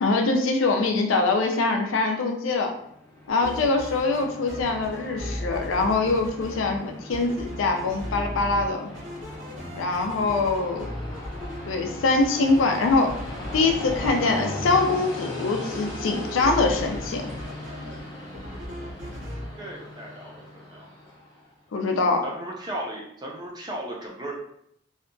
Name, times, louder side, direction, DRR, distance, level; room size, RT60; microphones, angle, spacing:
voice 1, 0.0-2.7 3.3-8.9 9.8-10.9 11.7-13.1 13.5-17.3 21.7-22.2, left 3 dB, 75° left, 4 dB, 0.4 m, -23 dB
Train, 2.8-21.5, left 1 dB, 20° left, 0.7 m, -38 dB
sound 1, 3.3-4.2 4.5-6.8 7.1-8.7 8.9-14.1 15.7-18.0 18.3-19.5, equal, 70° right, 1.0 m, -37 dB
voice 2, 3.9-4.3 10.4-10.5 19.6-20.9 22.2-24.3, right 1 dB, 20° right, -1 dB, 0.4 m, -36 dB
2.7 x 2.2 x 2.5 m, 0.71 s
head